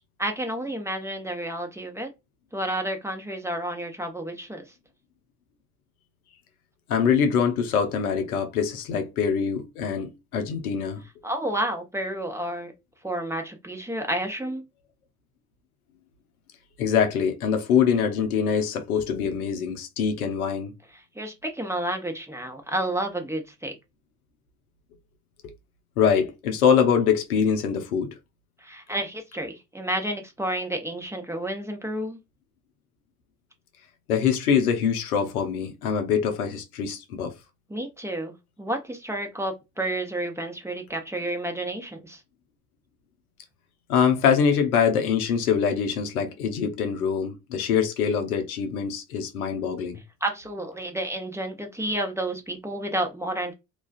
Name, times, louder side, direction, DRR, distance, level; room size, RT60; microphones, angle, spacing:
voice 1, 0.2-2.1 2.5-4.7 11.2-12.7 13.0-14.6 20.9-23.8 28.6-32.2 37.7-42.2 50.2-53.5, right 1 dB, 5° right, 0.8 m, -30 dB
voice 2, 6.9-11.0 16.8-20.7 26.0-28.2 34.1-37.3 43.9-50.0, left 7 dB, 90° left, 0.6 m, -24 dB
2.3 x 2.3 x 2.3 m
hypercardioid pair, 55°, 43 cm